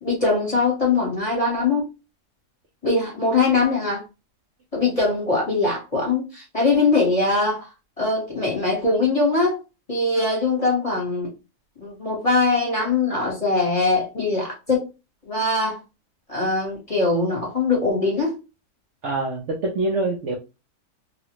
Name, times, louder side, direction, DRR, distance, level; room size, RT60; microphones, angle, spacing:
voice 1, 0.0-1.8 2.8-4.0 4.7-7.7 8.0-9.6 9.9-11.3 11.8-14.8 15.3-15.8 16.3-18.4, left 3 dB, 25° left, 1.1 m, -22 dB
voice 2, 19.0-20.4, right 2 dB, 60° right, 0.8 m, -25 dB
3.0 x 2.4 x 3.0 m
omnidirectional pair, 1.6 m